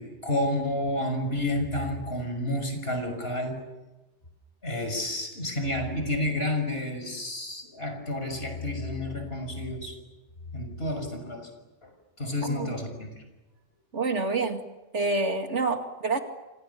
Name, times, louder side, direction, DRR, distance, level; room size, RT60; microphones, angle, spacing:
voice 1, 0.0-3.6 4.6-9.9 10.5-11.5 11.8-11.9 12.2-13.2, left 1 dB, 55° left, 6 dB, 6.4 m, -30 dB
voice 2, 12.4-12.7 13.9-14.6 14.9-16.2, right 3 dB, 75° right, 5 dB, 2.6 m, -27 dB
29.5 x 26.0 x 7.1 m, 1.1 s
omnidirectional pair, 1.2 m